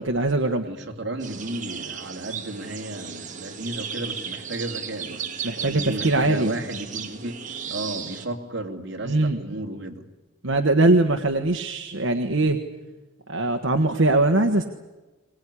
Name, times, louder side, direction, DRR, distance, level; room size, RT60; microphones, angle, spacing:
voice 1, 0.0-0.6 5.4-6.5 9.0-9.6 10.4-12.6 13.3-14.7, right 2 dB, 80° right, 4 dB, 1.4 m, -21 dB
voice 2, 0.6-7.4 7.7-10.0, right 1 dB, 60° right, 2 dB, 2.8 m, -33 dB
sound 1, 1.2-8.3, right 7 dB, 40° right, 1.8 m, -35 dB
23.0 x 19.5 x 9.9 m, 1.1 s
head